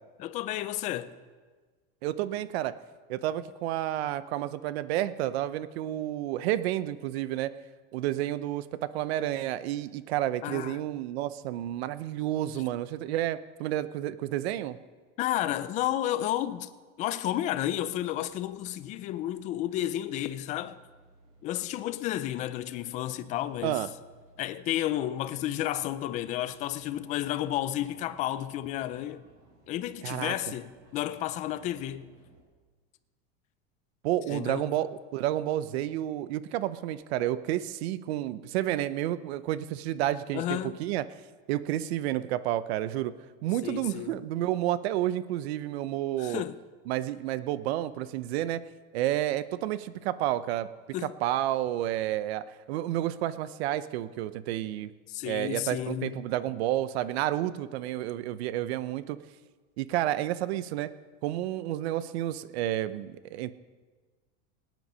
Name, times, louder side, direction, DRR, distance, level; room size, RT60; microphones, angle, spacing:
voice 1, 0.2-1.1 10.4-10.8 15.2-16.7 17.0-20.8 21.4-23.8 24.4-29.2 29.7-32.1 34.3-34.7 40.3-40.8 43.6-44.1 46.2-46.6 50.9-51.1 55.1-56.2, left 13 dB, 25° left, 0.4 m, -32 dB
voice 2, 2.0-2.7 3.1-7.5 7.9-14.8 23.6-23.9 30.0-30.3 34.0-41.0 41.5-43.1 43.4-46.4 46.9-48.6 48.9-50.7 51.2-54.9 55.2-59.2 59.8-60.9 61.2-63.5, right 13 dB, 80° right, 0.8 m, -30 dB
sound 1, 17.7-32.4, right 2 dB, 50° right, 3.8 m, -60 dB
18.0 x 9.3 x 5.5 m
supercardioid pair, 170°, 31 cm